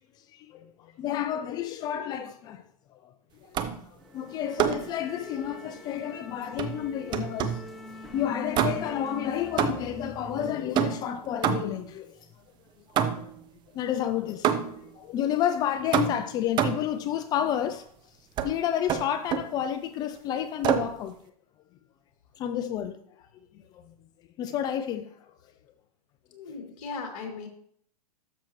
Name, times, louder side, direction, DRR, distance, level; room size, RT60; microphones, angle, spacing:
voice 1, 0.3-0.7 1.0-2.6 4.1-7.6 8.1-12.2 13.7-14.5 14.8-17.9 18.4-21.1 22.4-23.0 23.7-23.9 24.4-25.1, left 10 dB, 20° left, 0.3 m, -30 dB
sound 1, 3.5-3.9 4.6-5.0 6.6-7.7 8.5-9.1 9.6-10.0 10.7-11.9 13.0-13.4 14.4-14.9 15.9-16.9 18.4-18.5 18.9-19.5 20.6-21.0, right 8 dB, 20° right, 0.6 m, -27 dB
sound 2, 4.0-10.5, left 1 dB, ahead, 1.0 m, -43 dB
voice 2, 26.3-27.5, left 4 dB, 60° left, 2.6 m, -38 dB
12.5 x 6.4 x 3.1 m
hypercardioid pair, 145°, 20 cm